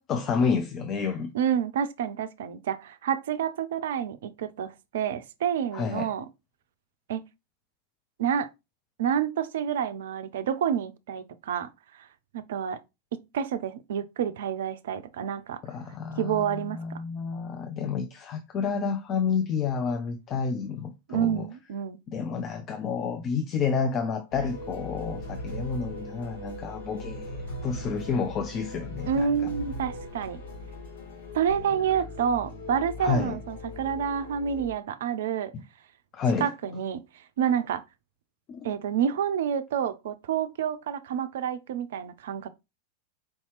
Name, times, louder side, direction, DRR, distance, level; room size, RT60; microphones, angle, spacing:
voice 1, 0.0-1.3 5.7-6.1 15.6-21.5 22.1-29.5 33.0-33.4 35.5-35.6 36.1-36.5 38.5-38.7, left 5 dB, 30° left, 0.4 m, -30 dB
voice 2, 1.3-6.3 7.1-7.2 8.2-8.5 9.0-11.7 12.3-12.8 13.1-15.6 16.2-17.0 21.1-22.0 29.1-30.4 31.3-35.5 36.4-37.0 37.4-37.8 38.6-42.5, right 8 dB, 60° right, 0.4 m, -28 dB
sound 1, 24.3-34.7, left 1 dB, 65° left, 1.5 m, -39 dB
4.5 x 2.8 x 3.0 m
figure-of-eight pair, 90°, 0 cm